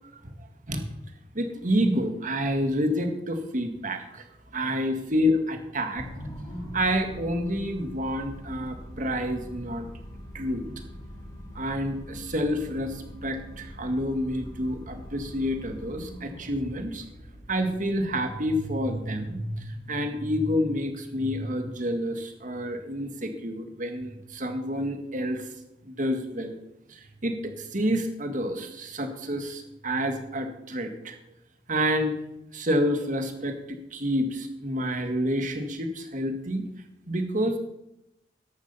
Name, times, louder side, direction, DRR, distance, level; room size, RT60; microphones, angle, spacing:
voice 1, 0.4-0.8 1.3-4.3 4.5-6.1 6.7-9.9 10.3-10.8 11.5-17.1 17.5-25.5 25.8-26.6 26.9-31.2 31.7-32.1 32.5-36.6 37.1-37.6, equal, 45° right, 6 dB, 1.9 m, -28 dB
sound 1, 6.0-20.4, equal, 20° left, 3.6 m, -43 dB
13.5 x 11.0 x 5.7 m, 0.86 s
head